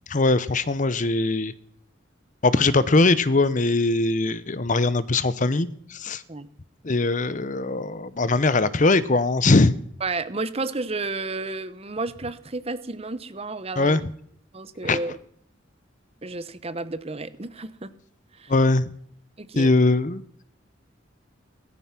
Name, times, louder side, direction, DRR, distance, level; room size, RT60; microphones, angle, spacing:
voice 1, 0.1-1.5 2.4-6.2 6.8-9.7 13.8-14.0 14.8-15.0 18.5-18.9 19.6-20.2, left 3 dB, 40° left, 16 dB, 0.8 m, -21 dB
voice 2, 10.0-14.0 14.5-15.2 16.2-17.9 18.3-18.5 19.4-19.7, right 3 dB, 30° right, 13 dB, 0.9 m, -31 dB
17.0 x 14.0 x 5.9 m, 0.63 s
head